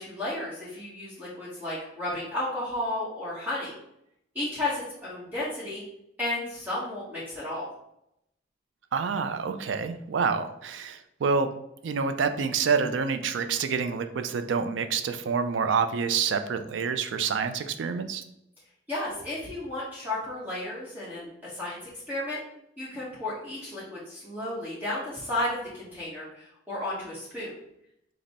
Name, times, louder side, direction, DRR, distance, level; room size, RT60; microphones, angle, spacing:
voice 1, 0.0-3.7 4.3-5.8 6.2-7.7 18.9-22.4 22.8-27.5, left 1 dB, 10° right, -8 dB, 1.0 m, -33 dB
voice 2, 8.9-11.5 11.8-18.2, right 5 dB, 90° right, 9 dB, 0.4 m, -27 dB
5.2 x 2.0 x 4.0 m, 0.80 s
head